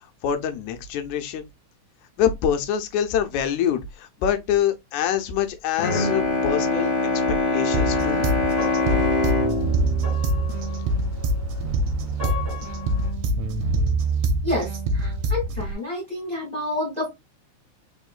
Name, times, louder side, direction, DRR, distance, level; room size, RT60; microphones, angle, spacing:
voice 1, 0.2-1.5 2.2-6.9 7.5-8.3, left 9 dB, 85° left, 2.1 m, -25 dB
Bowed string instrument, 5.8-11.4, left 2 dB, 45° left, 1.2 m, -24 dB
sound 1, 7.7-15.7, right 2 dB, 75° right, 1.8 m, -25 dB
sound 2, 7.9-13.1, left 5 dB, 25° right, 1.6 m, -36 dB
voice 2, 14.9-17.1, left 1 dB, 5° left, 1.4 m, -28 dB
4.4 x 3.5 x 2.3 m
omnidirectional pair, 3.4 m